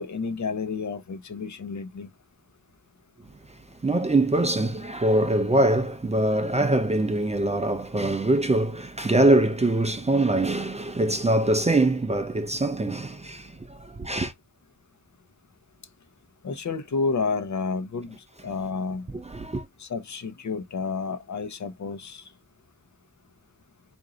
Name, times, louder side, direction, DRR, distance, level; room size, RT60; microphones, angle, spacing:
voice 1, 0.0-2.1 16.4-18.2 18.4-19.1 19.8-22.3, left 4 dB, 60° left, 0.8 m, -30 dB
voice 2, 3.8-14.3 19.1-19.7, right 2 dB, 20° right, 0.5 m, -23 dB
4.5 x 2.6 x 3.8 m
wide cardioid pair, 160°, 33 cm